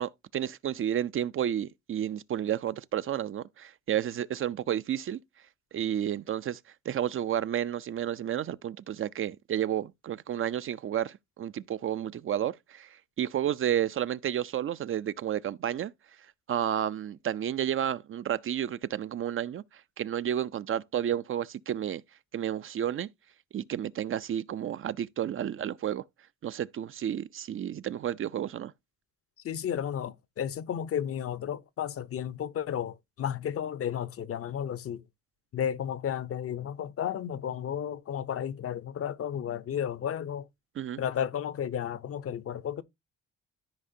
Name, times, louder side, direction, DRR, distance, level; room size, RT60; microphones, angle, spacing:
voice 1, 0.0-5.2 5.7-6.6 6.9-12.9 13.2-15.9 16.5-19.6 20.0-22.0 22.3-23.1 23.5-26.0 26.4-28.7 40.8-41.0, right 10 dB, 45° right, 0.4 m, -31 dB
voice 2, 29.4-35.0 35.5-40.5 41.0-42.8, left 9 dB, 50° left, 0.6 m, -33 dB
13.5 x 4.9 x 2.7 m
cardioid pair, 90°, 30 cm